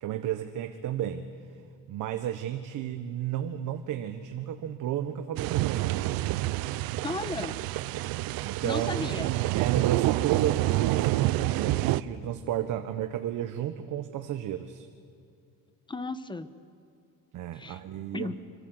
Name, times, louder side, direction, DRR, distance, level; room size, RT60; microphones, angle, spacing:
voice 1, 0.0-1.3 1.9-6.1 8.4-9.0 9.5-14.9 17.3-18.3, right 11 dB, 55° right, 7 dB, 1.3 m, -32 dB
sound 1, 5.4-12.0, right 17 dB, 75° right, 0.8 m, -28 dB
voice 2, 7.0-7.6 8.6-9.3 15.9-16.5 17.5-17.8 18.1-18.4, left 3 dB, 15° left, 12 dB, 1.1 m, -34 dB
26.0 x 23.5 x 8.0 m, 2.5 s
cardioid pair, 125°, 36 cm